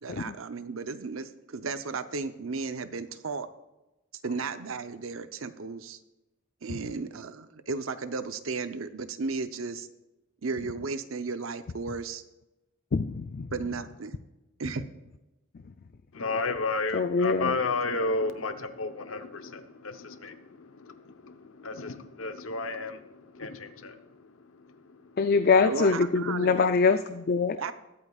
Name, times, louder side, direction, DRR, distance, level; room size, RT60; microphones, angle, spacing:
voice 1, 0.0-3.5 4.2-6.0 6.6-9.9 10.4-12.2 13.5-14.1 14.6-14.9 25.7-26.8 27.6-27.7, right 4 dB, 80° right, 11 dB, 0.7 m, -34 dB
voice 2, 12.9-13.5 16.9-17.5 25.2-27.6, left 4 dB, 50° left, 9 dB, 0.4 m, -24 dB
voice 3, 16.1-26.0, left 3 dB, 80° left, 8 dB, 0.9 m, -33 dB
21.5 x 8.5 x 2.4 m, 1.0 s
head